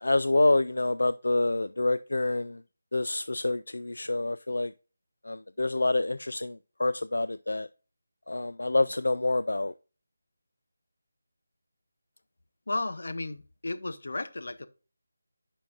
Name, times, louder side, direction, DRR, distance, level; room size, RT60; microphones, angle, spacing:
voice 1, 0.0-2.6 2.9-4.7 5.3-7.7 8.3-9.7, left 2 dB, 85° left, 0.3 m, -27 dB
voice 2, 12.7-14.7, left 2 dB, 65° left, 0.9 m, -34 dB
9.9 x 5.2 x 2.5 m
figure-of-eight pair, 175°, 0 cm